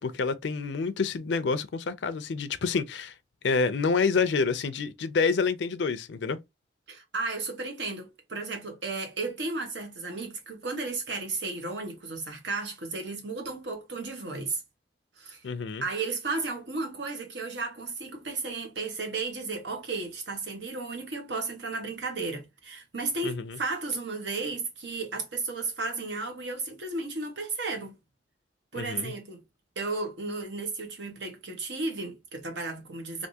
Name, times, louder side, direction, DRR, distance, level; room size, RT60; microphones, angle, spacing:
voice 1, 0.0-3.1 3.4-6.4 15.4-15.8 23.2-23.6 28.8-29.1, left 4 dB, 80° left, 0.4 m, -28 dB
voice 2, 6.9-14.6 15.2-15.4 15.8-28.0 28.7-29.4 29.7-33.3, right 3 dB, 80° right, 1.2 m, -34 dB
3.4 x 2.6 x 2.7 m
head